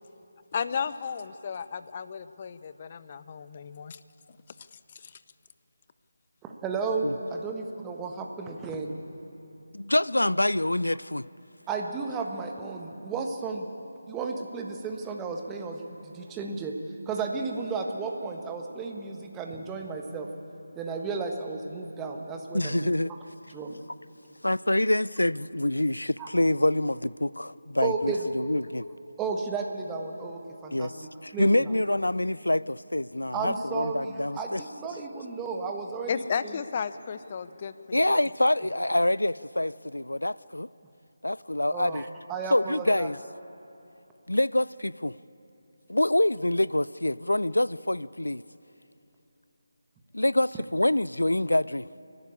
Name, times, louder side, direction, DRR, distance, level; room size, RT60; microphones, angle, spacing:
voice 1, 0.5-4.0 36.1-38.1, left 6 dB, 35° left, 0.7 m, -33 dB
voice 2, 6.4-9.0 11.7-13.7 14.1-20.3 20.7-23.2 23.5-23.8 26.2-26.3 27.8-28.3 29.2-30.9 31.3-31.7 33.3-36.6 41.7-43.1, right 4 dB, 10° right, 1.5 m, -33 dB
voice 3, 9.7-11.3 22.5-23.1 24.4-28.8 30.7-30.9 31.4-34.6 37.9-40.7 41.2-42.0 42.5-43.2 44.3-45.2 45.9-48.4 50.1-51.9, left 1 dB, 85° left, 0.4 m, -26 dB
29.0 x 12.0 x 8.6 m
figure-of-eight pair, 160°, 0 cm